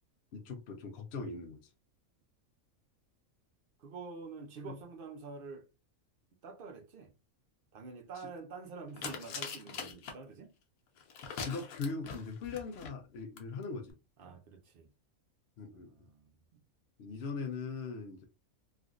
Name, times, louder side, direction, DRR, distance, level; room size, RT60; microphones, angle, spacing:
voice 1, 0.3-1.7 11.4-13.9 15.6-15.9 17.0-18.3, left 4 dB, 60° left, 0.7 m, -40 dB
voice 2, 3.8-5.7 6.4-7.1 7.7-10.6 14.2-14.9 15.7-16.6, right 4 dB, 60° right, 0.6 m, -47 dB
sound 1, 9.0-10.1 11.0-12.9 13.4-13.5 13.6-13.7, left 5 dB, 80° left, 1.2 m, -42 dB
3.5 x 2.4 x 2.4 m
omnidirectional pair, 1.5 m